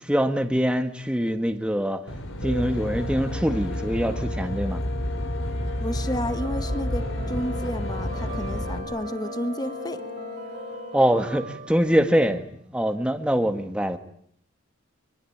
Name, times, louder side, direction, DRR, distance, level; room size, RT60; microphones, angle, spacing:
voice 1, 0.0-2.0 2.4-4.8 10.9-12.4 12.7-14.0, equal, 5° right, 1.7 m, -24 dB
Aircraft, 2.1-8.8, equal, 90° left, 4.4 m, -30 dB
sound 1, 2.4-11.1, left 5 dB, 55° left, 1.9 m, -39 dB
sound 2, 5.5-12.5, right 2 dB, 45° right, 2.4 m, -40 dB
voice 2, 5.8-10.0, equal, 20° left, 1.6 m, -31 dB
25.0 x 24.5 x 8.7 m
head